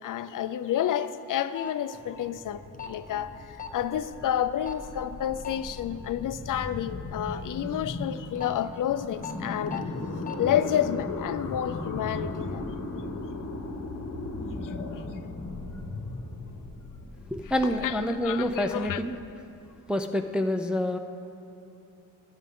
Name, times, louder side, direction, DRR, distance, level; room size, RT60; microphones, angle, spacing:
voice 1, 0.0-3.4 3.7-9.8 10.4-12.6 17.8-19.0, left 10 dB, 60° left, 0.5 m, -30 dB
sound 1, 1.5-1.7 2.7-2.9 3.6-3.8 4.7-4.9 5.4-5.6 8.1-8.5 9.2-9.3 9.7-9.8 10.2-10.4, left 8 dB, 25° left, 0.7 m, -37 dB
sound 2, 1.9-19.7, left 2 dB, 45° left, 1.2 m, -37 dB
voice 2, 17.3-19.2 19.9-21.0, left 1 dB, 5° right, 0.3 m, -27 dB
20.0 x 9.7 x 3.6 m
wide cardioid pair, 175°, 35 cm